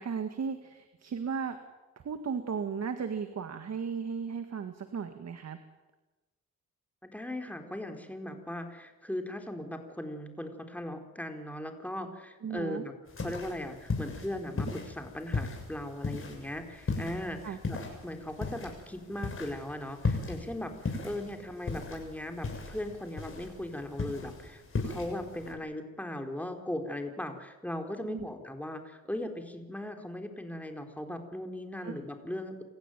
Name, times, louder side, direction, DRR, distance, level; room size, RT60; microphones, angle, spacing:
voice 1, 0.0-1.6 2.0-5.6 12.4-12.8 17.4-17.6 28.1-28.3 31.8-32.0, right 6 dB, 60° right, 8 dB, 1.9 m, -35 dB
voice 2, 7.0-12.9 13.2-17.8 18.0-32.6, left 1 dB, 5° left, 5 dB, 4.2 m, -38 dB
sound 1, 13.1-25.5, left 3 dB, 45° left, 7.3 m, -37 dB
28.0 x 15.5 x 9.2 m, 1.1 s
cardioid pair, 75°, 30 cm